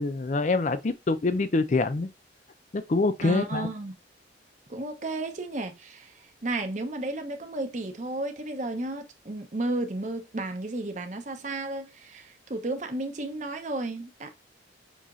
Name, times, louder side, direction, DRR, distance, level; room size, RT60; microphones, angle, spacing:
voice 1, 0.0-2.1 2.7-3.7, left 3 dB, 45° left, 0.5 m, -25 dB
voice 2, 3.2-3.9 4.7-6.1 6.4-14.3, right 2 dB, 45° right, 0.7 m, -33 dB
5.5 x 2.9 x 2.4 m
head